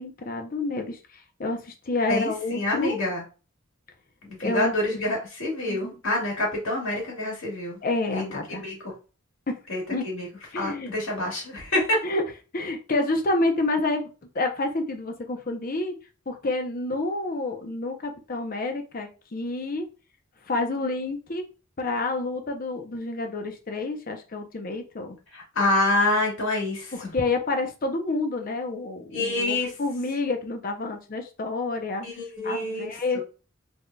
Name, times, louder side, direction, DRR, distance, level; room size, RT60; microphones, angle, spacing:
voice 1, 0.0-3.0 4.4-4.7 5.7-5.9 7.8-8.7 9.5-9.6 9.9-10.1 10.5-10.9 12.0-12.2 12.5-14.1 14.3-15.9 16.3-19.9 20.4-21.4 21.8-25.2 26.9-32.1 32.4-33.2, left 2 dB, 45° left, 5 dB, 0.7 m, -28 dB
voice 2, 2.1-3.2 4.2-7.8 8.1-8.9 9.7-10.3 10.6-12.0 25.3-27.1 29.1-29.7 32.0-33.2, left 1 dB, 80° left, -3 dB, 2.0 m, -27 dB
3.8 x 3.5 x 2.2 m, 0.34 s
head